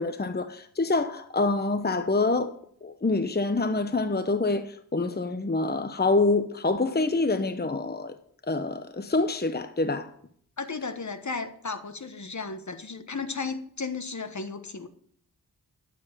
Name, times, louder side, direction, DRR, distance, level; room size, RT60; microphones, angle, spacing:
voice 1, 0.0-2.5 2.8-8.2 8.5-10.1, left 3 dB, 25° left, 0.9 m, -26 dB
voice 2, 10.6-14.9, left 4 dB, 50° left, 1.4 m, -34 dB
12.0 x 7.8 x 6.8 m
cardioid pair, 40°, 37 cm